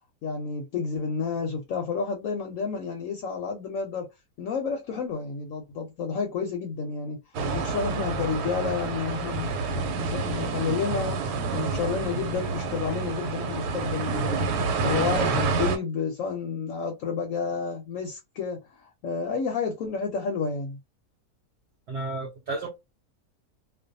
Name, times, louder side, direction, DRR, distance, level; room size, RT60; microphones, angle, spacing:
voice 1, 0.2-4.1 4.4-7.2 7.5-9.5 10.0-20.8, left 5 dB, 70° left, 0.9 m, -30 dB
sound 1, 7.3-15.8, right 4 dB, 85° right, 1.2 m, -28 dB
voice 2, 21.9-22.7, right 2 dB, 65° right, 0.7 m, -32 dB
2.5 x 2.2 x 2.6 m
omnidirectional pair, 1.7 m